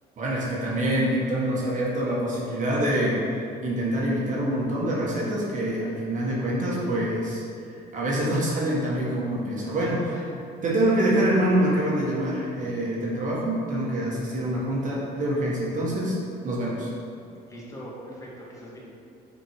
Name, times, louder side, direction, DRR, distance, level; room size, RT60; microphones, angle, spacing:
voice 1, 0.2-3.3 3.6-7.4 7.9-10.1 10.6-16.2 16.4-16.9, right 1 dB, 50° right, -5 dB, 1.4 m, -25 dB
voice 2, 9.8-10.2 17.5-18.8, equal, 20° left, -5 dB, 1.5 m, -41 dB
5.9 x 4.4 x 4.7 m, 2.5 s
cardioid pair, 110°, 17 cm